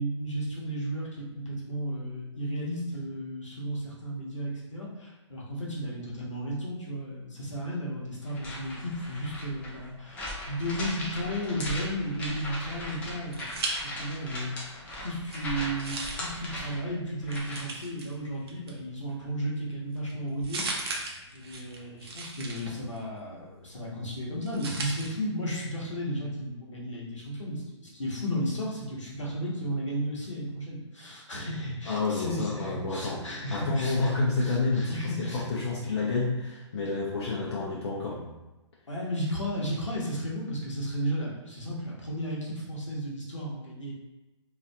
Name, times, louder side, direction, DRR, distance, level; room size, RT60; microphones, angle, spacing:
voice 1, 0.0-21.1 21.3-35.5 38.9-43.9, equal, 85° left, -4 dB, 0.9 m, -34 dB
sound 1, 8.2-17.8, left 1 dB, 10° left, 0.4 m, -39 dB
sound 2, 12.9-14.4 14.7-25.1, right 3 dB, 55° right, 0.5 m, -40 dB
voice 2, 31.9-38.3, left 3 dB, 60° left, -5 dB, 0.5 m, -29 dB
2.6 x 2.4 x 2.2 m, 1.0 s
figure-of-eight pair, 130°, 15 cm